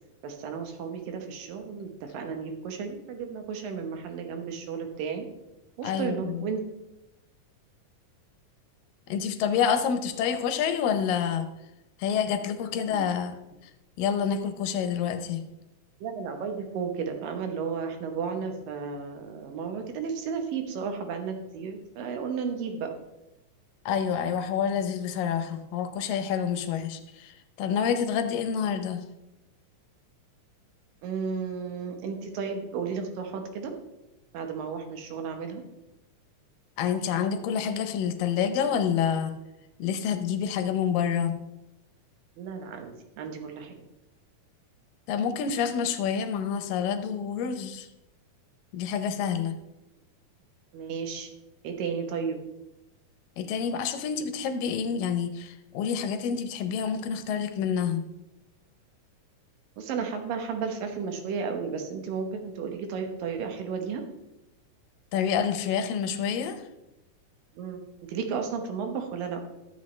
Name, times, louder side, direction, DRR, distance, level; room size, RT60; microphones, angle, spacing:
voice 1, 0.2-5.3 5.8-6.6 12.7-13.1 16.0-22.9 31.0-33.7 34.3-35.6 42.4-43.7 50.7-51.3 51.6-52.4 59.8-64.0 67.6-67.8 68.1-69.4, right 6 dB, 90° right, 5 dB, 2.8 m, -33 dB
voice 2, 5.8-6.5 9.1-11.5 12.0-13.4 14.0-15.4 23.9-27.3 27.6-29.0 36.8-39.3 39.8-41.4 45.1-47.9 48.7-49.5 53.4-58.0 65.1-66.6, left 7 dB, 90° left, 8 dB, 2.5 m, -28 dB
12.5 x 8.1 x 3.2 m, 0.95 s
omnidirectional pair, 3.9 m